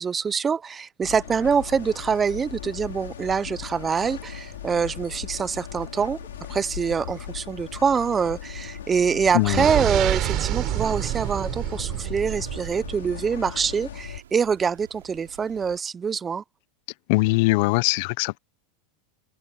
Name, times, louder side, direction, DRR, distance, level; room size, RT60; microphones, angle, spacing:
voice 1, 0.0-6.2 6.5-16.4, right 6 dB, 20° right, 0.8 m, -25 dB
sound 1, 1.0-14.2, left 11 dB, 85° left, 5.6 m, -38 dB
sound 2, 1.4-15.8, right 10 dB, 90° right, 6.4 m, -50 dB
voice 2, 9.3-9.6 17.1-18.4, left 23 dB, 60° left, 0.9 m, -21 dB
sound 3, 9.5-13.3, right 16 dB, 45° right, 4.2 m, -28 dB
hypercardioid pair, 110°, 0 cm